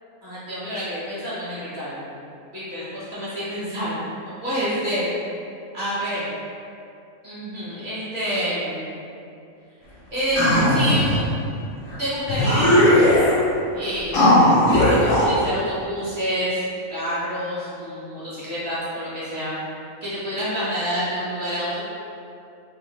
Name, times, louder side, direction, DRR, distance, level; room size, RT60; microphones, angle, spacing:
voice 1, 0.2-2.2 2.5-4.0 4.4-5.1 5.7-6.3 7.2-8.9 10.1-10.4 10.7-11.3 12.0-13.2 13.7-14.6 14.8-16.6 16.9-19.5 20.0-21.8, equal, 45° right, -10 dB, 0.8 m, -28 dB
sound 1, 10.4-11.2 11.9-12.0 12.3-13.4 14.1-15.3, left 1 dB, 75° left, 1.0 m, -17 dB
2.6 x 2.1 x 3.0 m, 2.6 s
omnidirectional pair, 1.5 m